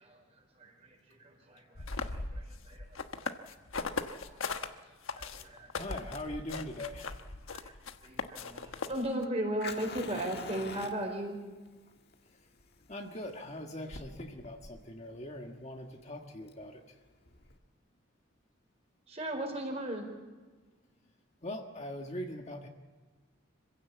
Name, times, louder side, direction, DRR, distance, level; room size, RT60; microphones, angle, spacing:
voice 1, 0.0-3.4 3.8-4.8 5.1-5.9 6.3-6.4 7.5-7.7 8.0-11.4 19.1-20.1, right 1 dB, 30° right, 2 dB, 4.7 m, -38 dB
sound 1, 1.8-4.7 5.1-9.2, left 4 dB, 85° left, 1.3 m, -38 dB
voice 2, 5.8-7.2 12.9-16.8 21.4-22.7, left 1 dB, 35° left, 2 dB, 1.6 m, -41 dB
Fire, 6.5-17.6, left 4 dB, 50° left, 1.7 m, -48 dB
26.0 x 16.0 x 8.4 m, 1.4 s
head